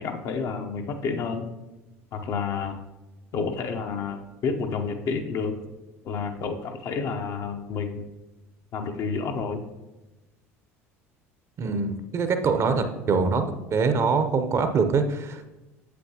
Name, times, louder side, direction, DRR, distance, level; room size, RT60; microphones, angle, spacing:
voice 1, 0.0-1.5 2.1-2.8 3.3-5.6 6.0-8.1 8.7-9.6, left 5 dB, 50° left, 5 dB, 0.8 m, -30 dB
voice 2, 11.6-13.4 13.7-15.5, right 5 dB, 40° right, 8 dB, 0.8 m, -24 dB
8.4 x 7.6 x 2.9 m, 1.0 s
figure-of-eight pair, 65°, 8 cm